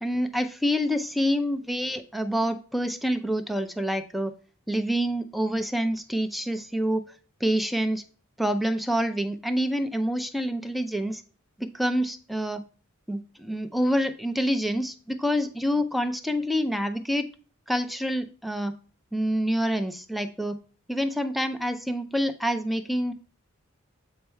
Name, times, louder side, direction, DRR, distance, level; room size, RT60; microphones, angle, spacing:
voice 1, 0.0-4.3 4.7-7.0 7.4-8.0 8.4-11.2 11.6-12.6 13.1-17.3 17.7-18.7 19.1-20.6 20.9-23.1, equal, ahead, 8 dB, 0.4 m, -27 dB
7.8 x 3.3 x 4.4 m, 0.38 s
head